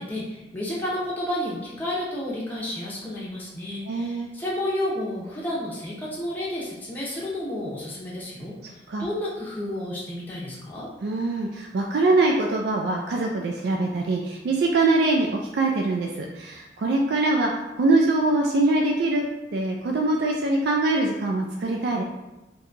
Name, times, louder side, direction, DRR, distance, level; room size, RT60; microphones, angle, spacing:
voice 1, 0.0-10.9, left 1 dB, 10° left, -7 dB, 0.6 m, -31 dB
voice 2, 3.9-4.3 8.9-9.1 11.0-17.5 17.8-19.3 19.5-22.0, right 2 dB, 65° right, 0 dB, 0.3 m, -23 dB
2.7 x 2.2 x 3.8 m, 1.0 s
head